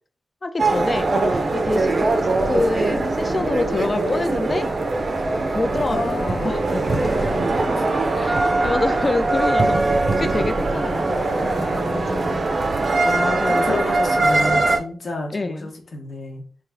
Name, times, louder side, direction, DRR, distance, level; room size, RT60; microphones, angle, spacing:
voice 1, 0.4-4.7 5.5-7.1 8.1-12.3 13.4-13.8 15.3-15.7, left 2 dB, 30° left, 0.4 m, -26 dB
sound 1, 0.6-14.8, right 2 dB, 45° right, 0.5 m, -21 dB
voice 2, 5.9-8.1 8.6-8.8 11.5-12.5 13.0-16.4, left 2 dB, 60° left, 1.0 m, -31 dB
3.3 x 2.4 x 3.4 m
wide cardioid pair, 115°, 0 cm